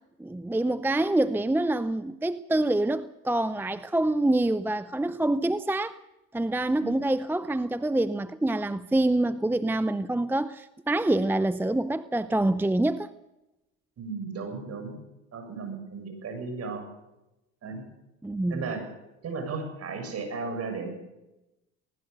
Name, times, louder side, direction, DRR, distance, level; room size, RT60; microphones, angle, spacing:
voice 1, 0.2-6.0 6.3-13.1 18.2-18.8, right 1 dB, 5° right, 0.6 m, -26 dB
voice 2, 14.0-15.0 15.3-16.8 17.6-17.9 18.5-18.8 19.2-20.9, right 4 dB, 50° right, 7.1 m, -35 dB
19.5 x 19.5 x 6.7 m
supercardioid pair, 80°, 33 cm